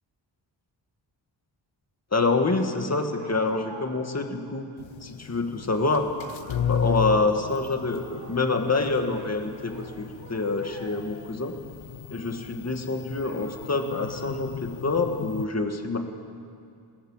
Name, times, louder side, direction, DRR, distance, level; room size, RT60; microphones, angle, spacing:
voice 1, 2.1-4.7 5.0-6.1 6.7-11.5 12.1-16.0, left 3 dB, 35° left, 4 dB, 2.1 m, -26 dB
sound 1, 3.2-4.3 4.7-4.8 5.6-5.9 6.2-7.2 7.6-8.8 9.1-11.4 11.9-12.7 13.2-14.5, right 3 dB, 75° right, 5.1 m, -49 dB
sound 2, 4.8-15.4, left 7 dB, 85° left, 0.8 m, -35 dB
28.5 x 20.5 x 7.5 m, 2.3 s
wide cardioid pair, 150°, 45 cm